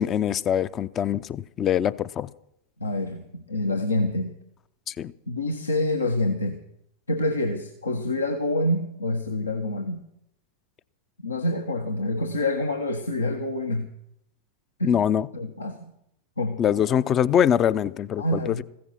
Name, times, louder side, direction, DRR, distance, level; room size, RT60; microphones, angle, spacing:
voice 1, 0.0-2.3 4.9-5.1 14.8-15.3 16.6-18.6, left 9 dB, 30° left, 0.5 m, -23 dB
voice 2, 2.8-4.3 5.3-6.6 7.1-10.1 11.2-13.9 14.8-15.0 15.3-15.9 16.4-16.6 18.2-18.6, left 1 dB, 80° left, 1.1 m, -27 dB
15.5 x 14.0 x 5.7 m
figure-of-eight pair, 90°, 0 cm